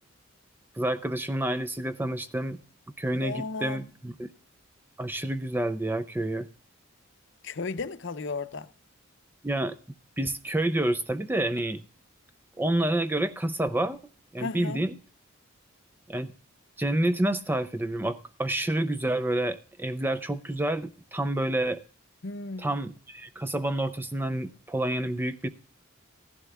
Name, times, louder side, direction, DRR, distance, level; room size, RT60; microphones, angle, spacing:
voice 1, 0.8-2.6 3.0-4.1 5.0-6.5 9.4-9.7 10.2-11.8 12.6-14.0 14.3-15.0 16.1-16.3 16.8-21.8 22.6-25.5, right 1 dB, 10° right, 0.4 m, -28 dB
voice 2, 3.1-3.9 7.4-8.7 14.4-14.8 22.2-22.7, left 3 dB, 55° left, 0.7 m, -35 dB
16.0 x 11.0 x 2.3 m
head